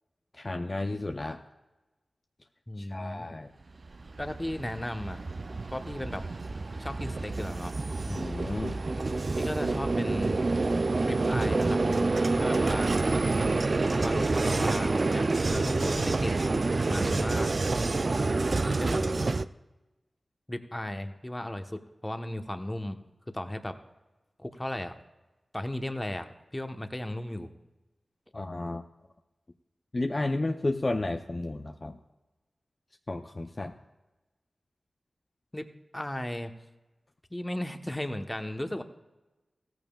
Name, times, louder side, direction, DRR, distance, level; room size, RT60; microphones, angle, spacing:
voice 1, 0.3-1.4 2.8-3.5 8.1-8.8 13.3-13.7 28.3-28.8 29.9-32.0 33.1-33.7, left 2 dB, 45° left, 5 dB, 0.6 m, -32 dB
voice 2, 2.7-3.3 4.2-5.2 5.7-6.3 6.8-7.7 9.4-10.4 11.0-12.9 13.8-16.4 16.9-17.5 18.6-19.3 20.5-23.0 23.3-23.8 24.4-25.0 25.5-27.5 35.5-35.7 35.9-36.5 37.3-38.8, left 1 dB, 15° left, 7 dB, 1.1 m, -35 dB
Vehicle, 3.8-19.5, right 3 dB, 55° right, 0.4 m, -28 dB
16.0 x 14.0 x 2.4 m, 1.1 s
cardioid pair, 40°, 0 cm